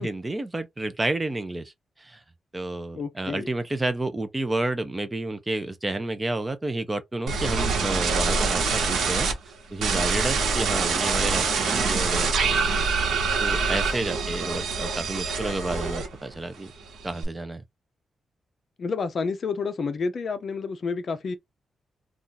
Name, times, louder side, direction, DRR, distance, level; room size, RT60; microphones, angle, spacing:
voice 1, 0.0-1.7 2.0-2.2 2.5-9.3 9.7-12.9 13.4-16.7 17.0-17.6, right 2 dB, 15° right, 0.5 m, -30 dB
voice 2, 2.9-3.5 18.8-21.4, left 4 dB, 45° left, 0.5 m, -29 dB
sound 1, 7.3-9.3 9.8-16.4 16.7-17.2, right 4 dB, 85° right, 1.0 m, -25 dB
2.6 x 2.4 x 3.8 m
wide cardioid pair, 140°, 0 cm